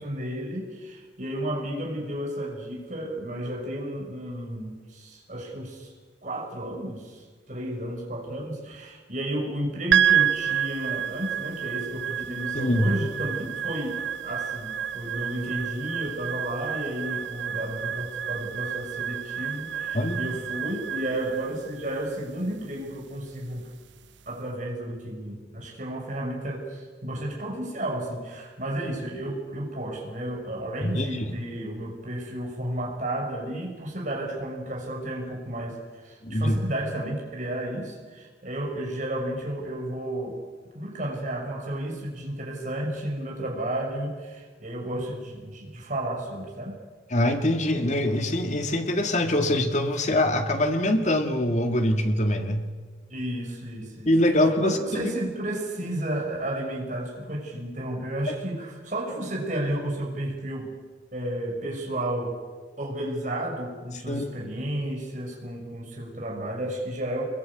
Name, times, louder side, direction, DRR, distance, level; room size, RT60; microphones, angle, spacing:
voice 1, 0.0-5.9 6.2-23.7 24.3-40.4 40.7-46.8 53.1-54.1 54.6-60.7 61.1-62.4 62.8-67.2, right 1 dB, 45° right, -1 dB, 6.0 m, -32 dB
sound 1, 9.9-24.3, right 9 dB, 90° right, 0.8 m, -29 dB
voice 2, 12.5-12.9 19.9-20.2 30.8-31.2 36.2-36.6 47.1-52.7 54.1-55.1 58.3-58.4 64.1-64.3, left 1 dB, 40° left, 5 dB, 2.1 m, -24 dB
24.5 x 22.0 x 8.6 m, 1.5 s
head